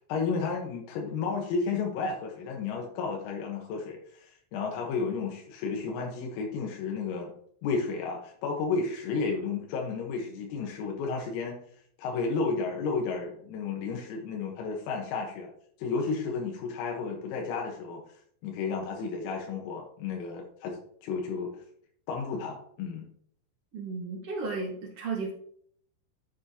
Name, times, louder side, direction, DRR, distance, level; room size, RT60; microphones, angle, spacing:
voice 1, 0.0-7.3 7.6-11.6 12.0-15.5 15.8-21.6 22.1-23.1, left 4 dB, 85° left, 0 dB, 4.1 m, -32 dB
voice 2, 23.7-25.3, right 4 dB, 90° right, -2 dB, 1.2 m, -34 dB
13.5 x 7.3 x 3.0 m, 0.62 s
omnidirectional pair, 5.9 m